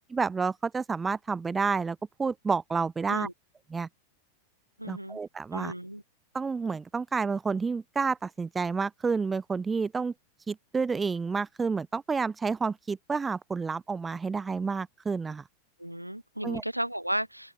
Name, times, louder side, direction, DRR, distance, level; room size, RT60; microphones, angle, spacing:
voice 1, 0.1-3.3 3.7-3.9 4.9-5.7 6.3-10.1 10.5-15.4 16.4-16.6, right 5 dB, 15° right, 0.5 m, -30 dB
voice 2, 4.8-5.2 5.5-6.0 15.8-17.5, right 1 dB, 90° right, 1.2 m, -34 dB
open air
figure-of-eight pair, 90°, 0 cm